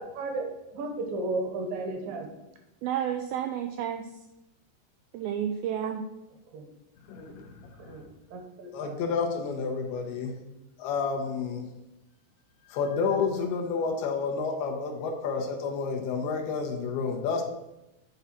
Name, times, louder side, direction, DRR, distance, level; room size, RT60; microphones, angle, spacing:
voice 1, 0.0-2.3 6.5-6.6 7.8-9.0, right 2 dB, 70° right, 3 dB, 2.7 m, -34 dB
voice 2, 2.8-4.1 5.1-6.0, right 9 dB, 85° right, 6 dB, 2.1 m, -31 dB
voice 3, 7.1-8.0 8.7-10.3 10.8-11.7 12.7-17.4, left 5 dB, 75° left, 3 dB, 3.0 m, -30 dB
10.0 x 4.1 x 5.8 m, 0.95 s
omnidirectional pair, 4.7 m